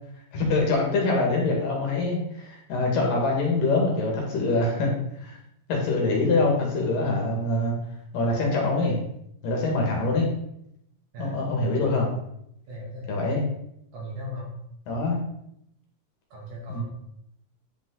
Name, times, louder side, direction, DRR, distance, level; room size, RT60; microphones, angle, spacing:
voice 1, 0.3-4.9 5.2-5.4 5.7-7.7 8.1-9.0 9.4-10.3 11.2-12.1 13.1-13.4 14.9-15.2 16.7-16.8, left 2 dB, 75° left, -1 dB, 3.6 m, -24 dB
voice 2, 12.7-13.3 13.9-14.5 16.3-16.8, equal, 85° right, -4 dB, 4.5 m, -37 dB
9.6 x 5.2 x 4.0 m, 0.77 s
omnidirectional pair, 4.0 m